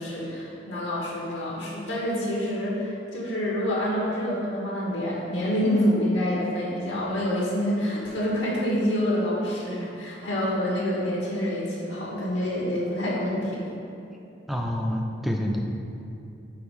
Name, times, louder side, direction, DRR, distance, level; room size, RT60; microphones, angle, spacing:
voice 1, 0.0-13.7, equal, 75° left, -5 dB, 1.0 m, -27 dB
voice 2, 14.5-15.6, equal, ahead, 0 dB, 0.3 m, -27 dB
4.8 x 4.0 x 5.3 m, 2.7 s
head